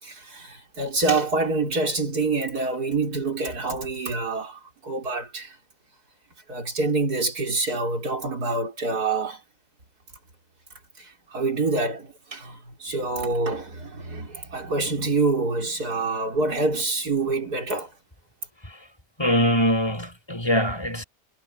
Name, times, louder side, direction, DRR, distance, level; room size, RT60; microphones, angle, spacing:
voice 1, 0.0-5.5 6.5-9.4 11.0-17.9, right 3 dB, 85° right, 5.0 m, -26 dB
voice 2, 19.2-21.0, equal, 15° left, 5.7 m, -22 dB
omnidirectional pair, 1.6 m